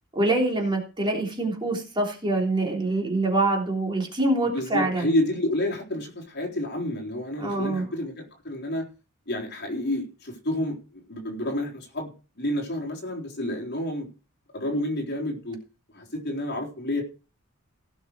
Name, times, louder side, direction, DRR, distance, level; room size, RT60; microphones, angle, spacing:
voice 1, 0.1-5.1 7.4-7.9, right 2 dB, 20° right, -1 dB, 3.5 m, -25 dB
voice 2, 4.5-8.9 9.3-12.1 12.4-14.1 14.5-15.6 15.9-17.0, left 1 dB, 50° left, 1 dB, 3.9 m, -29 dB
17.5 x 6.4 x 4.8 m, 0.33 s
head